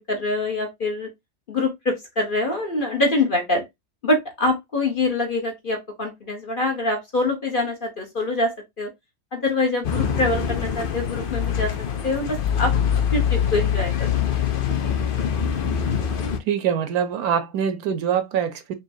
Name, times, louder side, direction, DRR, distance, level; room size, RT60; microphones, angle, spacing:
voice 1, 0.1-1.1 1.5-3.6 4.0-8.9 9.3-11.7 12.0-12.7 13.1-14.2 14.8-14.9, left 2 dB, 40° left, 1.0 m, -24 dB
sound 1, 9.8-16.4, left 8 dB, 70° left, 0.5 m, -24 dB
voice 2, 16.5-18.7, right 8 dB, 70° right, 1.1 m, -24 dB
5.5 x 2.9 x 2.6 m
omnidirectional pair, 1.7 m